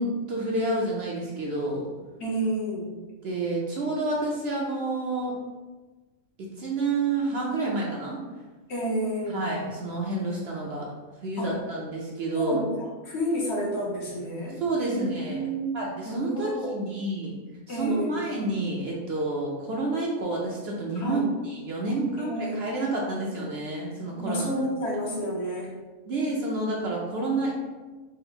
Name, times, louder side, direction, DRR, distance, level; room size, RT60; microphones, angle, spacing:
voice 1, 0.0-1.9 3.2-5.3 6.4-8.2 9.3-10.8 11.2-12.6 14.6-15.5 15.7-17.3 17.7-24.5 26.1-27.5, right 2 dB, 60° right, -3 dB, 0.8 m, -29 dB
voice 2, 2.2-2.9 8.7-9.4 11.4-11.5 12.3-15.8 16.0-16.7 17.7-18.2 21.0-21.3 22.2-22.6 24.2-25.7, right 1 dB, 55° left, -4 dB, 1.0 m, -30 dB
3.7 x 2.0 x 4.3 m, 1.3 s
omnidirectional pair, 1.4 m